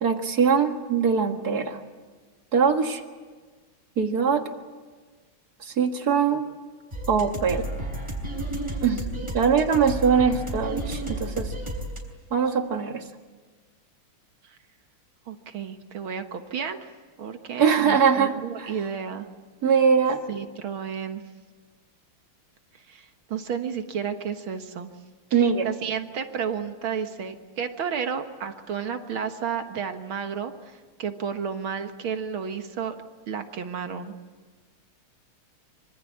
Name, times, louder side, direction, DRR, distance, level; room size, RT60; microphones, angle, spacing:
voice 1, 0.0-1.8 2.5-3.0 4.0-4.5 5.6-6.5 7.1-7.7 8.8-9.1 9.3-11.5 12.3-13.0 17.6-18.3 18.6-18.7 19.6-20.2 25.3-25.7, right 6 dB, 45° right, 6 dB, 2.2 m, -22 dB
sound 1, 6.9-12.0, right 1 dB, 10° right, 4.8 m, -32 dB
voice 2, 15.3-16.8 17.2-19.3 20.3-21.2 22.9-24.9 25.3-33.0 33.3-34.1, right 7 dB, 75° right, 7 dB, 2.2 m, -32 dB
25.5 x 25.0 x 8.5 m, 1.4 s
omnidirectional pair, 2.3 m